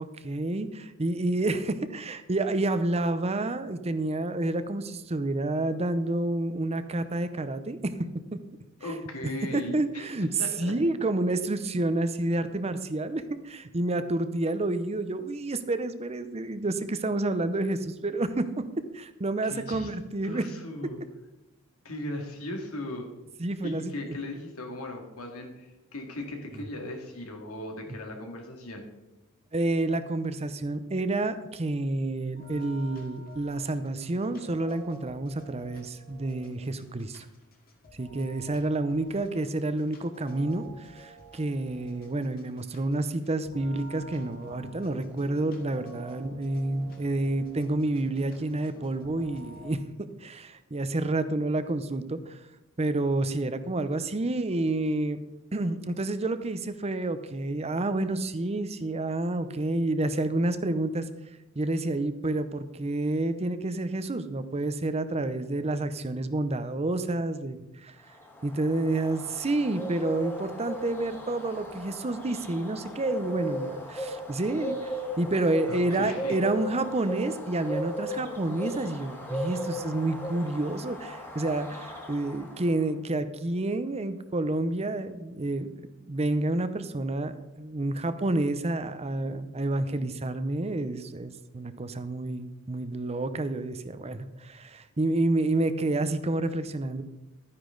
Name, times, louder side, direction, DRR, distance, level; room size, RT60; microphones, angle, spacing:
voice 1, 0.0-7.9 8.3-8.4 9.5-10.3 10.6-20.5 23.4-24.2 29.5-37.3 38.0-49.8 50.2-52.4 52.8-55.2 55.5-61.1 61.6-67.9 68.4-97.0, right 2 dB, 30° right, 11 dB, 0.7 m, -29 dB
voice 2, 8.8-10.1 10.4-10.7 19.4-19.9 20.2-21.0 21.8-23.1 23.6-28.9 75.3-76.4, left 1 dB, 80° left, 2 dB, 2.3 m, -38 dB
sound 1, 32.4-49.7, right 1 dB, 45° left, 2.2 m, -50 dB
Bird, 68.1-82.8, equal, 10° left, 1.7 m, -37 dB
12.5 x 9.8 x 3.9 m, 1.0 s
head